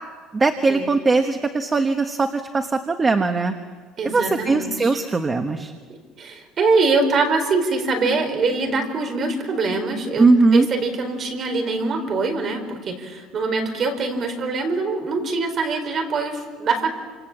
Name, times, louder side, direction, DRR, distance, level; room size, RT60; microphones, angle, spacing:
voice 1, 0.3-3.5 4.0-5.7 10.2-10.7, right 3 dB, 20° right, 6 dB, 1.3 m, -19 dB
voice 2, 4.0-4.9 5.9-16.9, right 3 dB, 35° right, 6 dB, 4.5 m, -23 dB
29.0 x 27.0 x 7.4 m, 1.5 s
cardioid pair, 145°, 0 cm